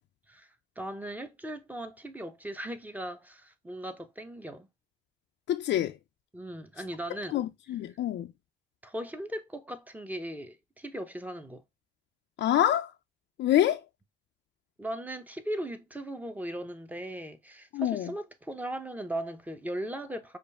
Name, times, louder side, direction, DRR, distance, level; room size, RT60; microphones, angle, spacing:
voice 1, 0.8-4.7 6.3-7.4 8.8-11.6 14.8-20.4, right 1 dB, 10° right, 0.9 m, -38 dB
voice 2, 5.5-6.0 7.3-8.3 12.4-12.9 13.4-13.8 17.7-18.1, left 12 dB, 65° left, 0.5 m, -26 dB
5.2 x 2.6 x 3.5 m
cardioid pair, 90°, 20 cm